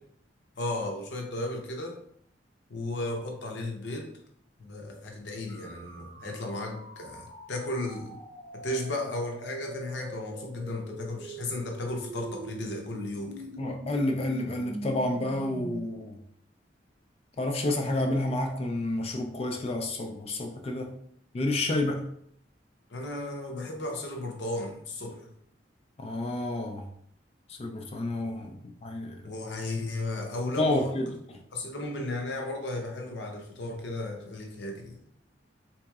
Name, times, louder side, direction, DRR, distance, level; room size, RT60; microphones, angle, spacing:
voice 1, 0.6-2.0 2.7-4.1 4.6-8.2 8.5-13.5 22.9-25.3 29.2-30.9 31.5-35.0, left 2 dB, 75° left, 0.7 m, -35 dB
sound 1, 5.5-15.8, right 1 dB, 50° right, 0.5 m, -43 dB
voice 2, 13.6-16.2 17.4-20.9 21.3-22.1 26.0-26.9 27.5-29.2 30.6-31.4, left 1 dB, 35° left, 0.3 m, -30 dB
3.7 x 2.9 x 2.3 m
head